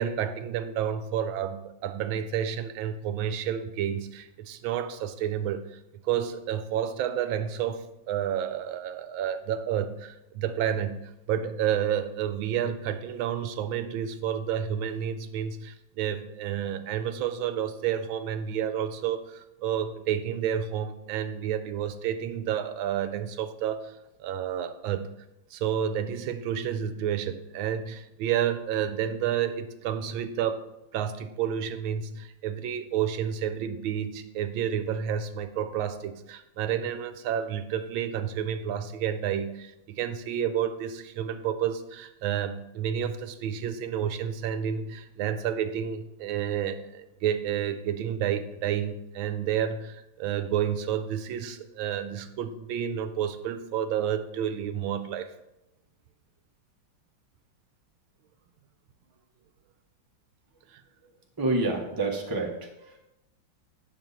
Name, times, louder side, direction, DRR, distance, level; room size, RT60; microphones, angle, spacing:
voice 1, 0.0-25.2 25.5-30.6 30.9-55.3 60.7-60.8, right 9 dB, 85° right, 10 dB, 1.4 m, -30 dB
voice 2, 61.4-63.0, right 2 dB, 15° right, 0 dB, 0.8 m, -28 dB
8.6 x 6.2 x 4.1 m, 0.90 s
omnidirectional pair, 2.2 m